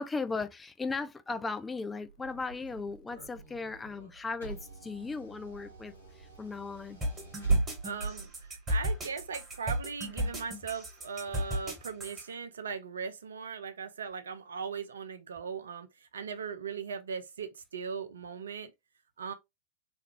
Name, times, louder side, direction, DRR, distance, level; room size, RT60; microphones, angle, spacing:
voice 1, 0.0-7.0, left 4 dB, 15° left, 0.3 m, -37 dB
Car / Engine, 2.0-10.3, right 4 dB, 85° left, 1.4 m, -37 dB
sound 1, 7.0-12.2, equal, 20° right, 1.5 m, -34 dB
voice 2, 7.8-18.7 19.2-19.3, right 6 dB, 70° right, 0.4 m, -39 dB
3.3 x 2.3 x 2.9 m
figure-of-eight pair, 90°, 0 cm